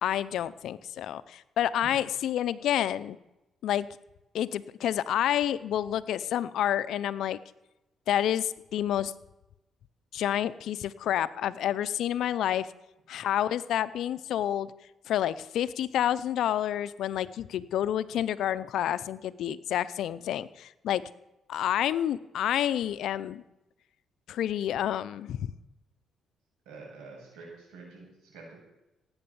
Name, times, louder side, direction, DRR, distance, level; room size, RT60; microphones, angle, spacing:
voice 1, 0.0-3.2 3.6-3.9 4.3-7.4 8.1-9.1 10.1-12.7 13.1-14.7 15.1-21.0 21.5-23.4 24.3-25.5, left 11 dB, 80° left, 15 dB, 0.6 m, -29 dB
voice 2, 26.7-28.6, right 3 dB, 90° right, -1 dB, 7.3 m, -47 dB
17.0 x 8.8 x 7.1 m, 0.95 s
cardioid pair, 90°, 0 cm